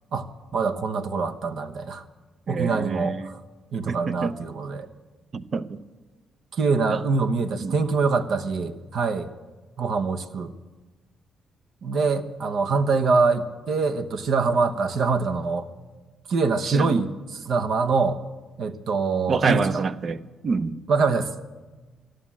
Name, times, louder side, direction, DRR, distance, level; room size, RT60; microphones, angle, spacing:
voice 1, 0.1-2.0 2.5-3.4 3.7-4.9 6.5-9.3 9.8-10.5 11.8-15.7 16.3-18.2 18.6-19.8 20.9-21.3, right 4 dB, 65° right, 1.0 m, -24 dB
voice 2, 2.5-3.3 3.9-4.3 5.3-5.8 6.9-7.0 7.6-7.7 16.7-17.0 19.3-20.2 20.4-20.8, right 4 dB, 45° right, 0.7 m, -27 dB
13.5 x 11.5 x 7.4 m
cardioid pair, 90°, 0 cm